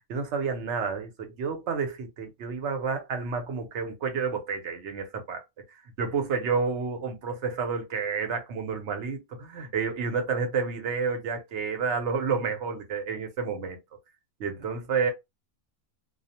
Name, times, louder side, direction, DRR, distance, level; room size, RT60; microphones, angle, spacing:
voice 1, 0.1-5.4 6.0-13.8 14.4-15.1, right 5 dB, 60° right, 0.9 m, -30 dB
2.3 x 2.0 x 2.7 m
omnidirectional pair, 1.5 m